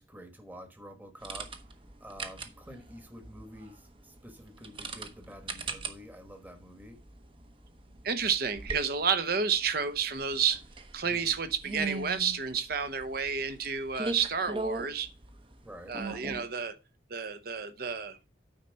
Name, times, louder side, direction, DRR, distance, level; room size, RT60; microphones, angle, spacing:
voice 1, 0.0-1.5 2.0-7.0 11.0-11.3 15.6-16.0, equal, 10° right, 1.3 m, -48 dB
sound 1, 1.2-16.4, right 3 dB, 30° right, 0.8 m, -41 dB
voice 2, 8.0-10.6 10.9-15.1 15.9-16.7 17.1-18.2, right 6 dB, 55° right, 0.9 m, -30 dB
9.2 x 4.3 x 5.2 m
head